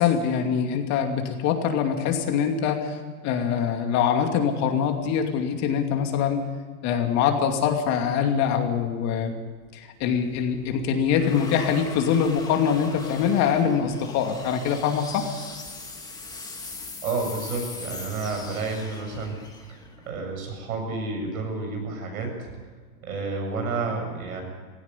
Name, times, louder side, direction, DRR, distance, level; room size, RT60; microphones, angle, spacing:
voice 1, 0.0-3.0 3.2-6.4 6.8-9.3 9.7-15.3, left 7 dB, 40° left, 4 dB, 2.6 m, -24 dB
sound 1, 9.6-20.9, left 3 dB, 10° left, 2.2 m, -41 dB
voice 2, 17.0-19.4 19.7-19.8 20.1-22.5 23.0-24.4, right 3 dB, 80° right, 2 dB, 7.6 m, -30 dB
17.0 x 16.5 x 9.9 m, 1.5 s
hypercardioid pair, 130°, 42 cm